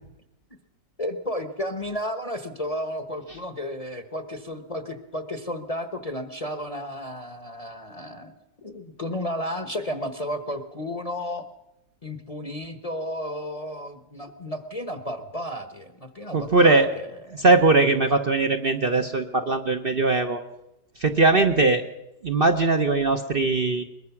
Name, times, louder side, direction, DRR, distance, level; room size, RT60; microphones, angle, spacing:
voice 1, 1.0-8.3 8.6-11.5 12.0-17.4, left 1 dB, 25° left, 7 dB, 1.1 m, -33 dB
voice 2, 16.3-16.9 17.3-20.4 21.0-21.8 22.2-23.8, right 3 dB, 40° right, 4 dB, 1.0 m, -20 dB
22.0 x 21.0 x 6.0 m, 0.90 s
omnidirectional pair, 1.8 m